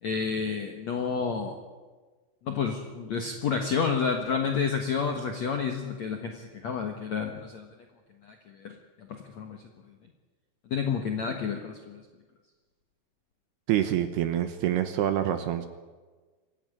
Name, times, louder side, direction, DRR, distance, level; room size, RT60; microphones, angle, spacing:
voice 1, 0.0-1.5 2.4-7.7 8.2-8.8 9.1-9.6 10.7-12.0, left 6 dB, 70° left, 4 dB, 1.7 m, -30 dB
voice 2, 13.7-15.7, right 11 dB, 75° right, 9 dB, 2.6 m, -26 dB
24.5 x 15.0 x 9.8 m, 1.3 s
omnidirectional pair, 5.5 m